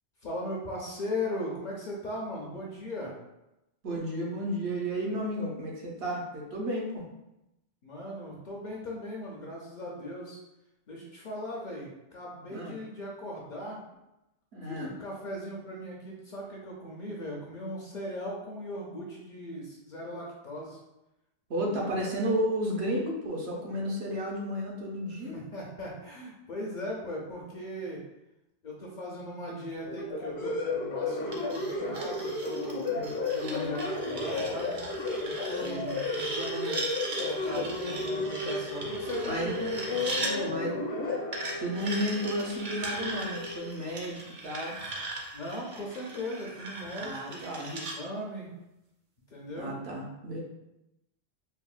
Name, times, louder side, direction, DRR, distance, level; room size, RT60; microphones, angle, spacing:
voice 1, 0.2-3.1 7.8-10.4 10.9-13.8 14.6-20.8 21.6-21.9 25.1-28.0 28.6-32.9 33.2-34.8 35.2-35.8 36.1-36.9 37.2-40.5 45.3-48.5 49.3-49.7, left 1 dB, 55° left, -3 dB, 0.6 m, -38 dB
voice 2, 3.8-7.0 12.5-12.7 14.5-14.9 21.5-25.4 32.9-33.8 35.4-36.0 39.3-39.6 40.4-40.7 41.6-44.8 47.0-47.7 49.6-50.4, equal, 70° right, -2 dB, 0.9 m, -33 dB
sound 1, 29.9-43.6, left 2 dB, 75° left, 1.0 m, -33 dB
sound 2, 31.3-40.3 41.3-48.0, right 2 dB, 55° right, 0.6 m, -39 dB
3.5 x 2.1 x 2.3 m, 0.91 s
omnidirectional pair, 1.1 m